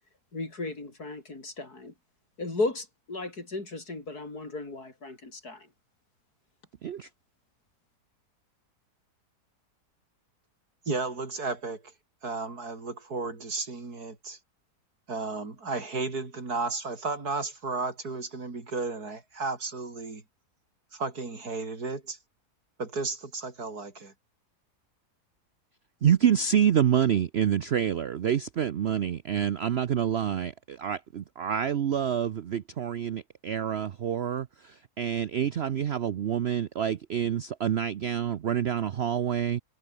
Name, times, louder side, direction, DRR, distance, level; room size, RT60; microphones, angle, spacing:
voice 1, 0.3-1.9 2.4-5.7, left 2 dB, 70° left, 5.6 m, -35 dB
voice 2, 10.9-11.9 12.2-14.4 15.1-20.2 20.9-22.2 22.8-24.1, right 3 dB, 70° right, 4.3 m, -33 dB
voice 3, 26.0-39.6, right 9 dB, 55° right, 0.8 m, -27 dB
omnidirectional pair, 1.7 m